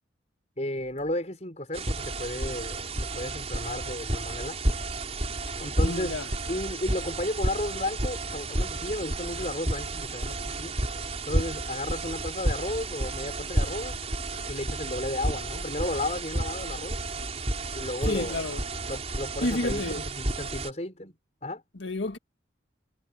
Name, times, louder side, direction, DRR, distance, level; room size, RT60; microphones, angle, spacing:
voice 1, 0.6-4.8 5.6-6.1 6.5-10.7 11.3-14.0 14.5-17.3 17.7-18.4 18.9-21.1 21.4-21.6, left 1 dB, 35° left, 6.0 m, -34 dB
sound 1, 1.7-20.7, right 2 dB, 35° right, 5.2 m, -31 dB
voice 2, 5.8-6.3 18.0-18.6 19.4-20.1 21.7-22.2, left 2 dB, 85° left, 1.9 m, -30 dB
head